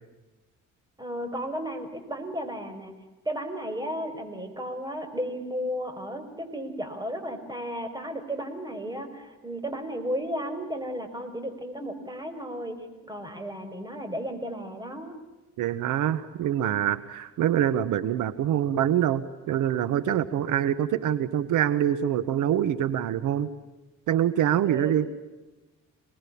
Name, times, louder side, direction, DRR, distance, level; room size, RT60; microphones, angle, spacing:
voice 1, 1.0-2.9 3.3-15.2 24.6-25.0, equal, 15° right, 7 dB, 5.9 m, -34 dB
voice 2, 15.6-23.5 24.1-25.1, right 10 dB, 85° right, 14 dB, 1.4 m, -25 dB
27.5 x 20.5 x 8.6 m, 1.2 s
cardioid pair, 90°, 30 cm